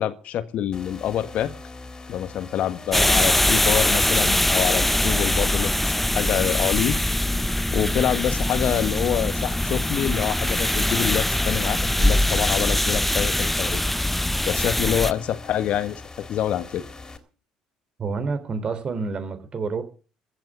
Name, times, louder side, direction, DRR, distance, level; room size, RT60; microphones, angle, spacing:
voice 1, 0.0-1.5 2.1-7.0 7.7-13.8 14.5-16.8, left 10 dB, 60° left, 11 dB, 1.6 m, -26 dB
sound 1, 0.7-17.2, left 3 dB, 25° left, 3.4 m, -42 dB
sound 2, 2.9-15.1, left 1 dB, 5° left, 0.6 m, -22 dB
voice 2, 18.0-19.8, right 4 dB, 40° right, 11 dB, 3.5 m, -28 dB
15.0 x 8.9 x 8.3 m, 0.38 s
hypercardioid pair, 55°, 3 cm